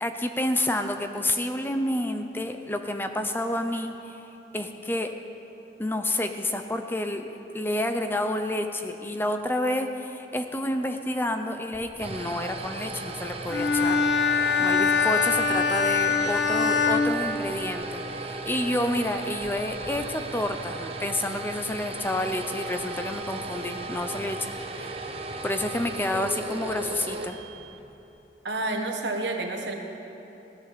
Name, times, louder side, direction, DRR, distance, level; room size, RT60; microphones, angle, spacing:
voice 1, 0.0-4.2 4.5-5.1 5.8-14.0 14.6-24.5 24.7-24.9 25.4-27.4, left 1 dB, 10° left, 6 dB, 0.6 m, -29 dB
sound 1, 11.7-27.9, right 2 dB, 35° right, 0.9 m, -36 dB
Bowed string instrument, 13.5-18.0, left 5 dB, 70° left, 1.1 m, -24 dB
voice 2, 28.4-29.7, right 2 dB, 70° right, 3 dB, 1.6 m, -29 dB
17.0 x 11.5 x 6.8 m, 3.0 s
head